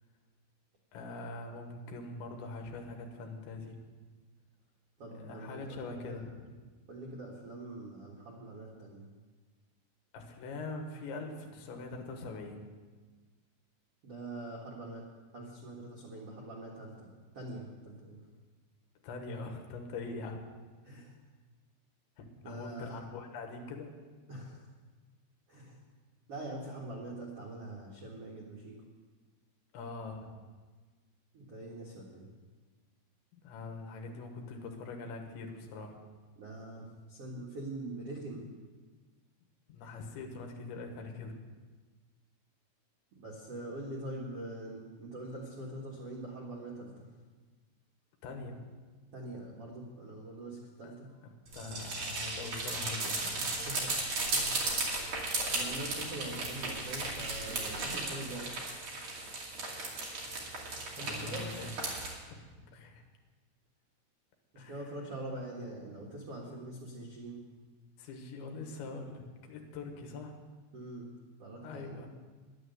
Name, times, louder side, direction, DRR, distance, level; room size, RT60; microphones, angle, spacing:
voice 1, 0.9-3.8 5.2-6.5 10.1-12.6 19.0-20.4 22.2-23.9 29.7-30.3 33.3-36.0 39.7-41.4 48.2-48.6 50.8-50.9 51.2-53.6 61.0-61.7 62.3-62.4 62.7-63.0 64.6-64.9 68.0-70.3 71.6-72.1, left 3 dB, 70° left, 3 dB, 3.5 m, -43 dB
voice 2, 5.0-6.3 6.9-9.1 14.0-15.0 15.3-17.1 17.3-18.2 20.8-21.1 22.4-23.0 24.3-24.6 25.5-25.8 26.3-28.8 31.3-32.3 36.4-38.5 39.8-39.9 43.2-47.1 49.1-51.1 53.4-53.9 54.3-54.6 55.5-58.5 60.9-61.5 64.5-67.4 70.7-71.1 71.4-71.9, right 2 dB, 80° right, -3 dB, 1.3 m, -43 dB
sound 1, 51.5-62.1, right 2 dB, 40° right, 2.8 m, -36 dB
Squeak, 53.6-58.7, right 3 dB, 60° right, 1.9 m, -47 dB
11.0 x 10.0 x 8.0 m, 1.4 s
omnidirectional pair, 5.7 m